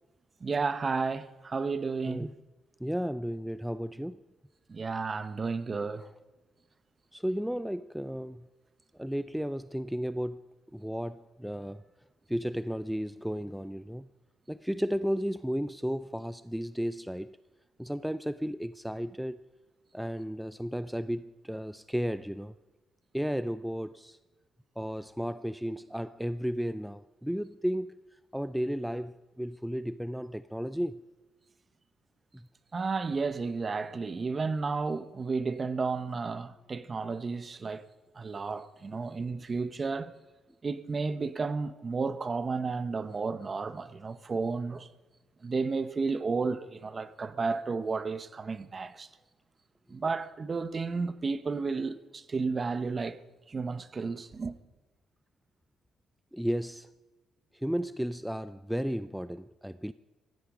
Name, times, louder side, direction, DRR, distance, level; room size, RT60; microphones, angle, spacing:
voice 1, 0.4-2.3 4.7-6.1 32.7-37.8 38.2-40.1 40.6-44.9 45.4-49.1 49.9-53.2 53.5-54.5, right 4 dB, 35° right, 0.9 m, -32 dB
voice 2, 2.8-4.2 6.0-6.1 7.1-8.5 8.9-11.8 12.3-14.1 14.5-17.4 17.8-19.4 19.9-22.5 23.1-24.2 24.8-28.0 28.3-31.1 32.3-32.5 38.9-39.1 56.3-56.9 57.5-59.9, equal, ahead, 0.4 m, -34 dB
18.0 x 16.0 x 5.0 m
cardioid pair, 90°, 0 cm